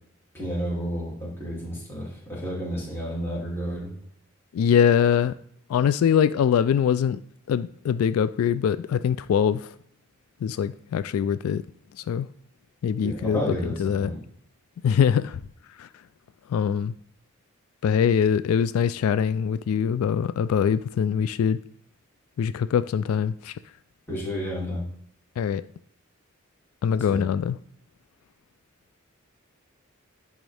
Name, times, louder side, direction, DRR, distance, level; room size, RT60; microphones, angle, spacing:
voice 1, 0.3-3.9 13.0-13.7 14.0-14.2 24.1-24.8 27.1-27.2, equal, 10° left, -6 dB, 2.6 m, -31 dB
voice 2, 4.5-5.3 5.7-7.2 7.5-9.7 10.4-11.6 11.9-12.3 12.8-14.1 14.8-15.4 15.8-15.9 16.5-16.9 17.8-21.6 22.4-23.6 25.4-25.6 26.8-27.6, left 7 dB, 85° left, 16 dB, 0.3 m, -23 dB
10.0 x 3.6 x 3.4 m, 0.67 s
head